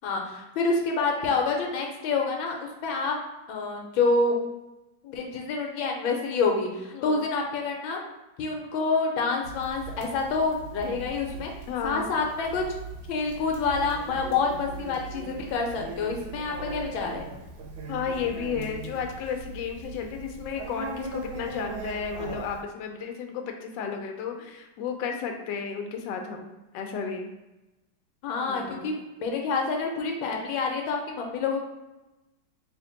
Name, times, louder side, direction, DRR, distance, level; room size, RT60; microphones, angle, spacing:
voice 1, 0.0-3.1 3.5-4.3 5.1-8.0 8.4-11.5 11.8-12.6 13.1-17.3 28.2-31.7, left 4 dB, 90° left, 1 dB, 1.5 m, -27 dB
voice 2, 6.9-7.2 11.7-12.1 17.9-27.3 28.5-28.9, left 6 dB, 75° left, 3 dB, 1.2 m, -33 dB
Conversation, 9.4-22.6, right 3 dB, 85° right, 1.4 m, -39 dB
3.4 x 2.9 x 3.8 m, 1.0 s
omnidirectional pair, 2.1 m